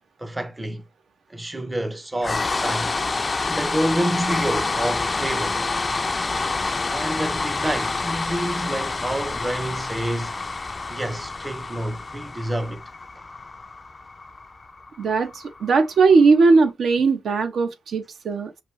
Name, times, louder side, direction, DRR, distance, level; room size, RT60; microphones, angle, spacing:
voice 1, 0.2-0.8 1.3-2.9 3.5-5.7 6.9-10.3 10.9-12.8, right 1 dB, 15° right, 0.6 m, -28 dB
sound 1, 2.2-16.3, left 3 dB, 30° left, 0.4 m, -28 dB
voice 2, 15.0-18.5, right 4 dB, 70° right, 0.8 m, -18 dB
5.9 x 2.7 x 3.1 m
cardioid pair, 110°, 0 cm